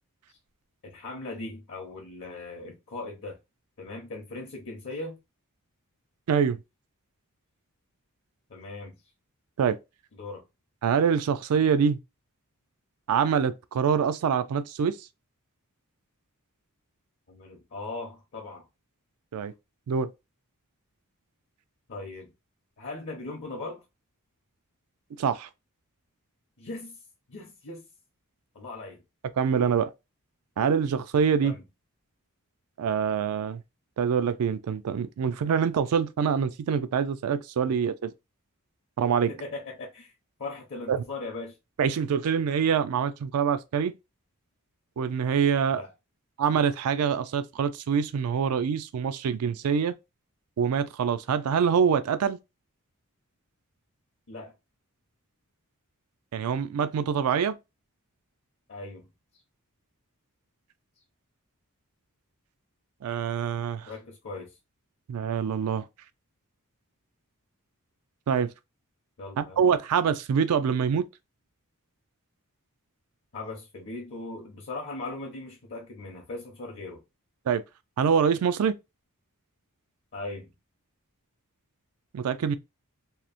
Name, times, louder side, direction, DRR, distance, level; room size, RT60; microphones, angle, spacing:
voice 1, 0.8-3.4 3.8-5.2 8.5-9.0 10.1-10.4 17.3-18.7 21.9-22.3 22.8-23.8 26.6-27.0 27.3-27.8 28.5-29.0 31.4-31.6 39.3-40.1 40.4-41.6 45.7-45.9 54.3-54.5 58.7-59.1 63.9-64.5 69.2-69.6 73.3-77.0 80.1-80.5, left 2 dB, 55° left, 0.7 m, -39 dB
voice 2, 6.3-6.6 9.6-9.8 10.8-12.0 13.1-15.0 19.3-19.5 19.9-20.1 25.2-25.5 29.4-29.9 30.6-31.5 32.8-33.6 34.0-38.1 39.0-39.3 40.9-41.0 41.8-43.9 45.0-45.8 46.4-49.9 50.6-52.4 56.3-57.6 63.0-63.9 65.1-65.8 68.3-68.5 69.4-71.1 77.5-77.6 78.0-78.8 82.1-82.6, right 7 dB, 75° right, 0.4 m, -25 dB
2.8 x 2.0 x 2.4 m
head